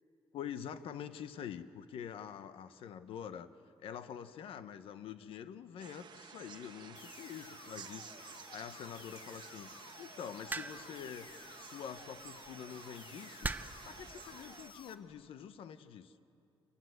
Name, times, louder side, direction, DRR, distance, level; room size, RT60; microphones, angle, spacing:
voice 1, 0.3-3.5 3.8-11.3 11.6-13.5 13.8-16.1, left 8 dB, 80° left, 12 dB, 0.9 m, -46 dB
sound 1, 5.8-14.7, right 7 dB, 55° right, 1.0 m, -53 dB
sound 2, 6.9-14.9, left 5 dB, 60° left, 1.3 m, -54 dB
sound 3, 10.5-11.0 12.2-12.5 13.4-13.9 14.9-15.2, right 3 dB, 20° right, 0.6 m, -39 dB
27.0 x 20.0 x 7.9 m, 2.7 s
cardioid pair, 145°, 9 cm